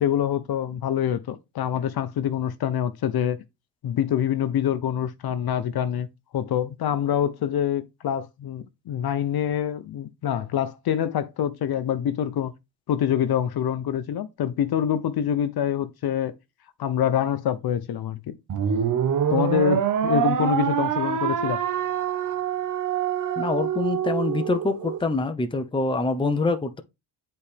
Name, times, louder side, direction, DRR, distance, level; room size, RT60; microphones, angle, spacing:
voice 1, 0.0-3.4 3.8-6.1 6.3-12.5 12.9-16.3 16.8-18.4 19.3-21.6, left 9 dB, 50° left, 0.8 m, -25 dB
sound 1, 18.5-25.0, right 8 dB, 40° right, 1.0 m, -25 dB
voice 2, 23.4-26.8, left 3 dB, 10° left, 0.8 m, -25 dB
8.0 x 4.3 x 3.4 m
cardioid pair, 85°, 47 cm